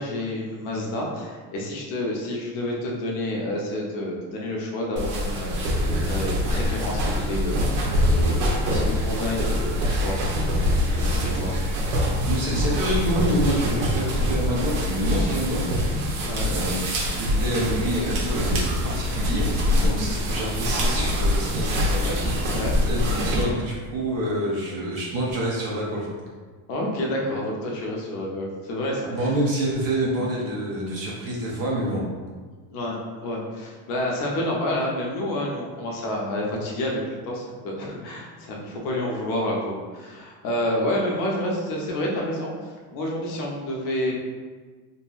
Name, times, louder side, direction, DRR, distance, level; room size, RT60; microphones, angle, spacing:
voice 1, 0.0-7.6 8.1-10.2 10.9-11.5 16.2-16.5 22.0-22.1 22.4-22.8 26.7-29.3 32.7-37.0 37.3-42.5 42.9-44.1, left 1 dB, 50° left, -2 dB, 0.6 m, -29 dB
sound 1, 5.0-23.4, left 1 dB, 85° right, 0.7 m, -24 dB
sound 2, 11.5-18.6, equal, 15° right, 0.9 m, -42 dB
voice 2, 12.3-15.8 16.4-22.5 22.8-26.1 29.1-32.0, right 1 dB, 35° right, -4 dB, 0.5 m, -27 dB
2.8 x 2.6 x 2.3 m, 1.4 s
cardioid pair, 175°, 41 cm